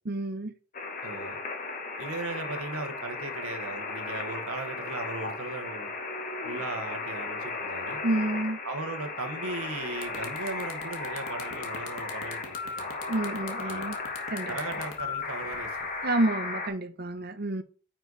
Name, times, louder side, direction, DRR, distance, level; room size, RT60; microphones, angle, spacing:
voice 1, 0.1-0.5 8.0-8.6 13.1-14.0 14.3-14.5 16.0-17.6, right 1 dB, 45° right, 0.8 m, -29 dB
sound 1, 0.7-16.7, left 4 dB, 40° left, 1.1 m, -36 dB
voice 2, 1.0-1.4 2.0-5.9 6.4-8.0 8.6-12.9 13.6-13.8 14.5-15.9, right 3 dB, 85° right, 1.4 m, -37 dB
sound 2, 9.5-9.6 9.9-16.0, left 5 dB, 75° left, 1.6 m, -44 dB
9.6 x 4.5 x 4.0 m
head